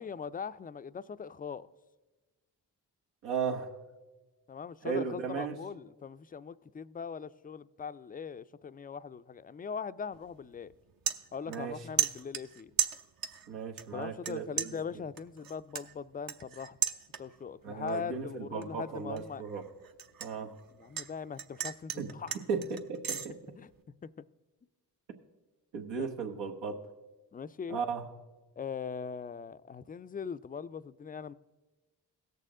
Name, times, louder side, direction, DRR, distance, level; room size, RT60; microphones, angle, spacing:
voice 1, 0.0-1.7 4.5-10.7 11.3-12.7 13.9-16.8 17.2-19.4 20.8-22.4 23.5-24.1 26.0-26.1 27.3-27.8 28.6-31.3, left 6 dB, 20° left, 0.4 m, -41 dB
voice 2, 3.2-3.7 4.8-5.6 11.5-11.8 13.5-14.7 17.6-19.6 20.2-20.5 22.0-22.1 22.5-23.4 25.7-26.8 27.7-28.1, right 6 dB, 85° right, 1.2 m, -35 dB
sound 1, 10.1-10.3 10.7-11.7 12.0-13.5 13.8-14.3 14.6-17.5 17.9-18.2 18.6-21.1 21.4-23.3, right 9 dB, 55° right, 0.8 m, -34 dB
17.5 x 6.7 x 3.7 m
supercardioid pair, 40°, 42 cm